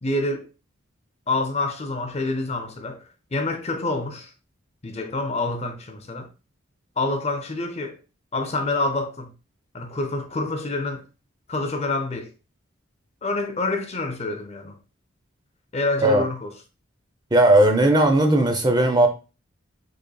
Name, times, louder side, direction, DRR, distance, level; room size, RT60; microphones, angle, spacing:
voice 1, 0.0-0.5 1.3-3.0 3.3-4.3 4.8-6.3 7.0-8.0 8.3-9.3 9.7-11.0 11.5-12.3 13.2-14.8 15.7-16.5, left 2 dB, 30° left, 0.6 m, -27 dB
voice 2, 17.3-19.1, right 1 dB, 20° right, 0.7 m, -17 dB
5.2 x 4.0 x 2.3 m
head